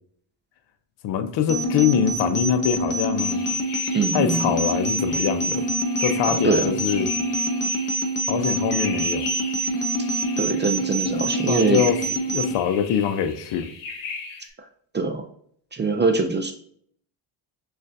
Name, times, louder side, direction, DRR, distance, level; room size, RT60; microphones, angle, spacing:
voice 1, 1.0-3.4 4.1-5.7 6.0-7.1 8.3-9.3 11.5-13.7, left 8 dB, 65° left, 0.6 m, -24 dB
sound 1, 1.5-12.5, right 1 dB, 30° left, 0.9 m, -25 dB
sound 2, 3.2-14.5, left 5 dB, 80° left, 1.0 m, -38 dB
voice 2, 3.9-4.5 6.3-6.7 10.4-11.8 14.9-15.2 15.7-16.5, right 4 dB, 25° right, 0.4 m, -23 dB
6.3 x 2.5 x 2.6 m
cardioid pair, 100°, 48 cm